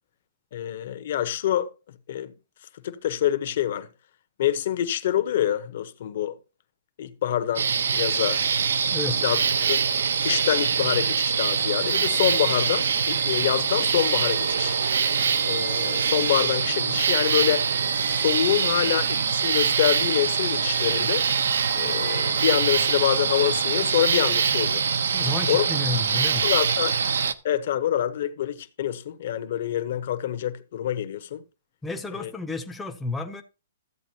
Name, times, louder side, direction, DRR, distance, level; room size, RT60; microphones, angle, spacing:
voice 1, 0.5-1.7 2.1-2.3 2.8-3.9 4.4-6.4 7.0-7.7 7.9-8.4 9.2-9.4 9.7-9.8 10.2-14.8 15.4-17.7 18.1-21.3 21.7-24.9 25.5-25.6 26.4-27.0 27.4-31.4 32.1-32.3, left 11 dB, 40° left, 1.0 m, -26 dB
sound 1, 7.6-27.3, right 6 dB, 75° right, 0.8 m, -24 dB
voice 2, 8.9-9.2 25.1-26.5 31.8-33.4, left 2 dB, 5° left, 0.7 m, -31 dB
sound 2, 11.9-22.9, right 8 dB, 45° right, 1.1 m, -41 dB
13.5 x 8.5 x 2.9 m
hypercardioid pair, 180°, 0 cm